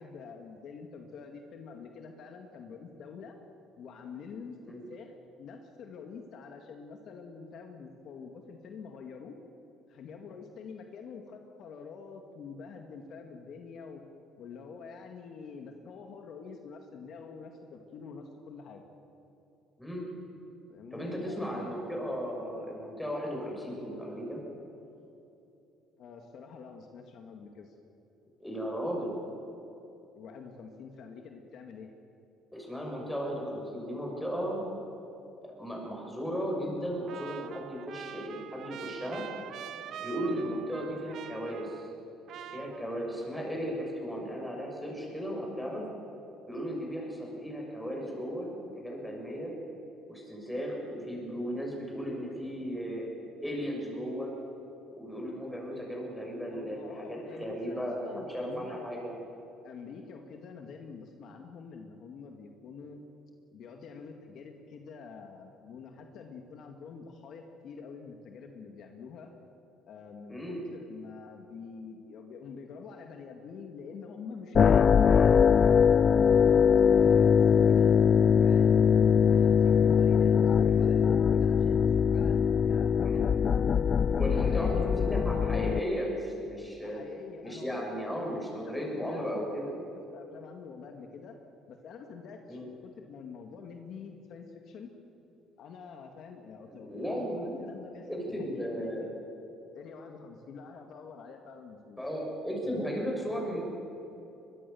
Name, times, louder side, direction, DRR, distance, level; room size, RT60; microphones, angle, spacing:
voice 1, 0.0-3.4 3.8-9.4 9.9-14.0 14.4-18.8 20.7-21.8 26.0-27.8 30.1-31.9 56.5-58.9 59.6-63.0 63.5-69.3 69.9-75.9 76.9-77.9 78.3-83.5 84.3-85.9 86.8-89.3 90.1-91.4 91.7-94.9 95.6-99.1 99.7-102.0, left 5 dB, 55° left, 4 dB, 2.1 m, -46 dB
voice 2, 20.9-24.4 28.4-29.2 32.5-34.6 35.4-39.2 40.0-41.9 42.5-45.8 46.5-49.5 50.1-53.1 53.4-54.3 55.0-59.1 70.3-70.6 83.0-83.3 84.1-87.0 87.4-89.7 92.5-92.7 96.7-97.6 98.1-99.1 102.0-103.6, equal, 5° left, -1 dB, 6.9 m, -35 dB
Trumpet, 37.1-42.0 42.3-43.3, right 9 dB, 60° right, 1.2 m, -44 dB
sound 1, 74.5-85.8, left 7 dB, 35° left, 0.4 m, -22 dB
23.5 x 21.5 x 7.1 m, 2.9 s
cardioid pair, 125°, 0 cm